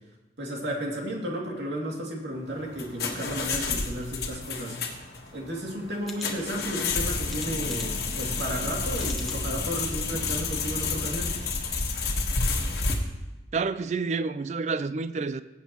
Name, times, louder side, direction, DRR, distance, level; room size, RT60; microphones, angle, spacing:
voice 1, 0.4-5.0 5.3-11.4, right 1 dB, 80° right, 2.4 m, -33 dB
sound 1, 2.5-12.9, left 4 dB, 60° left, 1.4 m, -30 dB
sound 2, 6.0-6.3 7.3-8.1 9.0-9.4 10.0-10.1 10.4-10.5, left 1 dB, ahead, 1.0 m, -42 dB
voice 2, 13.5-15.4, right 4 dB, 40° right, 0.3 m, -29 dB
17.5 x 8.2 x 3.0 m
head